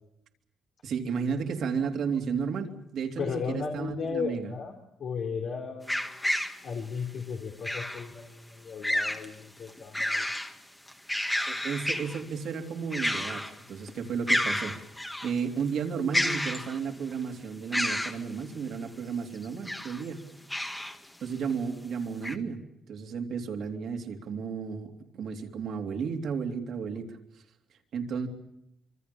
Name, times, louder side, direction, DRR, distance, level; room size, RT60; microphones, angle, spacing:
voice 1, 0.8-4.5 11.5-20.2 20.8-20.9 21.2-22.6 22.9-27.2 27.9-28.3, right 6 dB, 70° right, 3 dB, 3.3 m, -33 dB
voice 2, 3.2-6.1 6.6-10.3, left 6 dB, 65° left, 2 dB, 3.4 m, -35 dB
sound 1, 5.9-6.6 7.6-8.1 8.8-9.3 9.7-10.5 10.9-12.2 12.9-13.6 13.9-14.0 14.3-15.3 16.1-17.0 17.7-18.2 19.4-20.0 20.5-21.0 21.5-21.6 22.2-22.4, left 1 dB, 10° left, 1.9 m, -30 dB
26.5 x 24.0 x 7.0 m, 0.80 s
cardioid pair, 90°, 0 cm